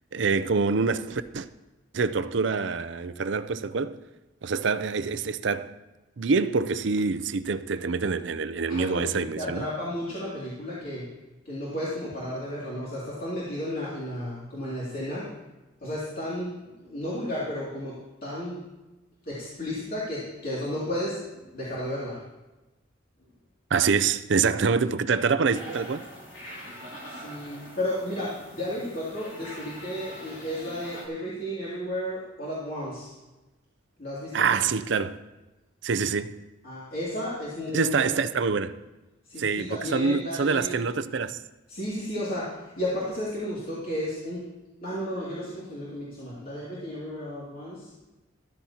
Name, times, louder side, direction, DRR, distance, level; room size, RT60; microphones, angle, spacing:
voice 1, 0.1-1.5 1.9-4.0 4.4-5.7 6.2-9.7 23.7-26.0 34.3-35.2 35.8-36.4 37.7-38.8 39.4-41.4, right 5 dB, 65° right, 0.5 m, -26 dB
voice 2, 8.7-11.1 11.4-15.3 15.8-16.5 16.8-18.6 19.2-22.2 27.1-33.1 34.0-34.6 36.6-38.1 39.2-40.8 41.7-44.4 44.8-47.9, left 1 dB, 50° left, 2.7 m, -33 dB
sound 1, 25.5-31.1, equal, 85° left, 2.8 m, -43 dB
13.5 x 13.5 x 2.9 m
head